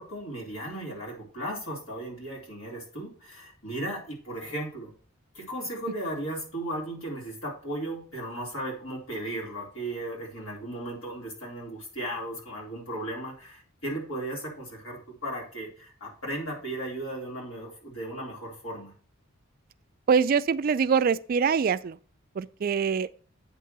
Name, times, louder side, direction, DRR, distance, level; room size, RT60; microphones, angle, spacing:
voice 1, 0.0-4.9 5.3-18.9, right 1 dB, 90° left, 3.5 m, -36 dB
voice 2, 20.1-22.0 22.4-23.1, right 6 dB, 45° right, 0.3 m, -24 dB
8.6 x 3.7 x 6.7 m
head